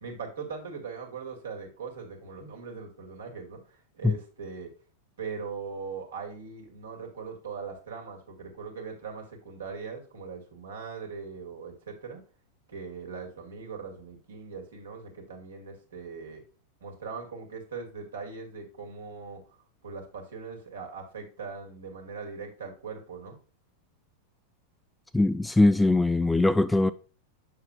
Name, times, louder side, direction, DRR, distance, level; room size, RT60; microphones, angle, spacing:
voice 1, 0.0-4.7 5.2-12.2 12.7-16.4 16.8-19.4 19.8-23.4, right 5 dB, 65° right, 2.1 m, -40 dB
voice 2, 25.1-26.9, left 2 dB, 5° left, 0.3 m, -21 dB
7.4 x 6.4 x 2.4 m
figure-of-eight pair, 90°, 0 cm